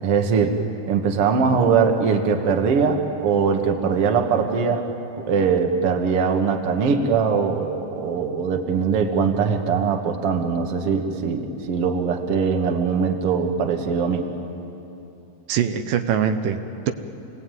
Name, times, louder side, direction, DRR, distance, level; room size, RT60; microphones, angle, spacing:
voice 1, 0.0-4.9 5.3-14.3, right 5 dB, 50° right, 4 dB, 2.2 m, -21 dB
voice 2, 15.5-16.9, right 8 dB, 85° right, 7 dB, 2.7 m, -23 dB
27.5 x 19.5 x 9.2 m, 2.8 s
omnidirectional pair, 3.8 m